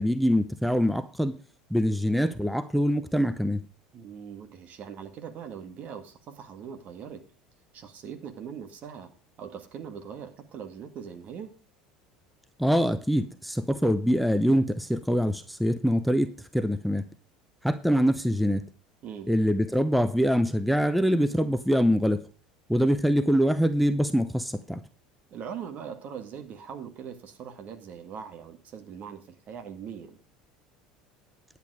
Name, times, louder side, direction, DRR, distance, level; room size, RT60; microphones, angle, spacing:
voice 1, 0.0-1.3 1.7-3.6 12.6-17.0 17.6-18.6 19.3-22.2 22.7-24.8, equal, ahead, 0.7 m, -24 dB
voice 2, 3.9-7.2 7.7-9.1 9.4-11.6 19.0-19.3 25.3-30.2, right 7 dB, 45° right, 2.0 m, -41 dB
10.5 x 8.4 x 4.8 m
hypercardioid pair, 70°, 4 cm